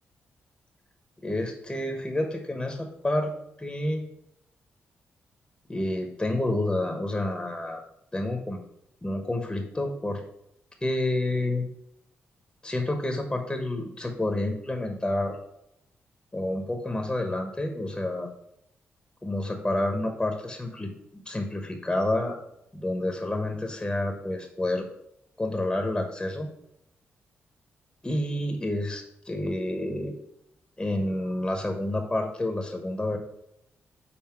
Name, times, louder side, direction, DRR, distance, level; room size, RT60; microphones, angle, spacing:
voice 1, 1.2-3.3 3.6-4.0 5.7-7.8 8.1-8.6 9.0-10.2 10.8-11.7 12.6-15.4 16.3-18.3 19.2-20.9 21.2-22.4 22.7-24.9 25.4-26.5 28.0-30.1 30.8-33.2, left 1 dB, 15° left, 4 dB, 1.2 m, -29 dB
5.9 x 4.1 x 5.9 m, 0.79 s
cardioid pair, 65°, 5 cm